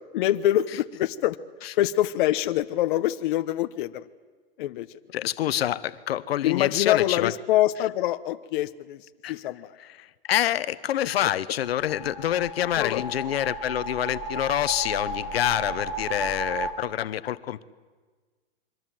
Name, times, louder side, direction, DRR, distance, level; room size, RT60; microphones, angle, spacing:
voice 1, 0.1-1.4 1.8-4.1 4.6-4.9 6.4-9.8 12.8-13.0, left 13 dB, 55° left, 9 dB, 1.0 m, -25 dB
voice 2, 5.1-7.3 9.2-9.4 9.8-17.7, left 12 dB, 80° left, 14 dB, 1.1 m, -27 dB
sound 1, 11.6-16.7, right 2 dB, 5° right, 2.7 m, -34 dB
28.0 x 24.0 x 7.7 m, 1.4 s
hypercardioid pair, 145°, 30 cm